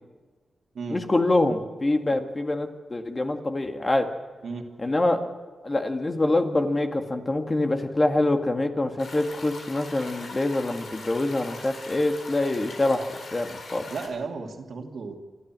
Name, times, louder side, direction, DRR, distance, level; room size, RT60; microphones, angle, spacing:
voice 1, 0.9-4.1 4.8-5.2 5.6-13.1 13.3-13.8, left 2 dB, 30° left, 5 dB, 1.9 m, -25 dB
sound 1, 9.0-14.1, left 3 dB, 70° left, 4.2 m, -41 dB
voice 2, 13.9-15.1, right 4 dB, 75° right, 3 dB, 2.6 m, -34 dB
28.0 x 12.5 x 7.5 m, 1.4 s
wide cardioid pair, 90°, 0 cm